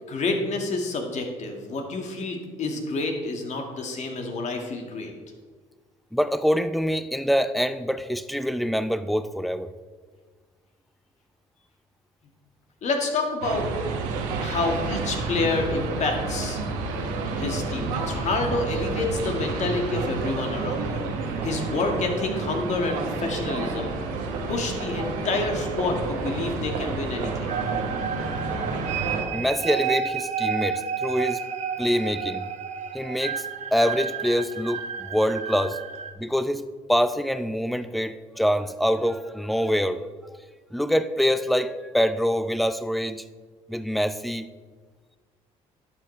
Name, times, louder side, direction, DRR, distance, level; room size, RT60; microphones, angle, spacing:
voice 1, 0.1-5.1 12.8-13.7 14.4-16.6 17.3-23.9 24.5-27.5, left 3 dB, 55° left, 3 dB, 1.8 m, -28 dB
voice 2, 6.1-9.7 29.3-31.4 31.8-32.5 32.9-33.4 33.7-35.8 36.2-40.0 40.7-43.2 43.7-44.5, equal, ahead, 13 dB, 0.5 m, -25 dB
sound 1, 13.4-29.2, right 3 dB, 90° right, 1.2 m, -30 dB
sound 2, 27.5-36.1, right 7 dB, 55° right, 0.7 m, -31 dB
11.5 x 7.5 x 3.3 m, 1.5 s
supercardioid pair, 75°, 14 cm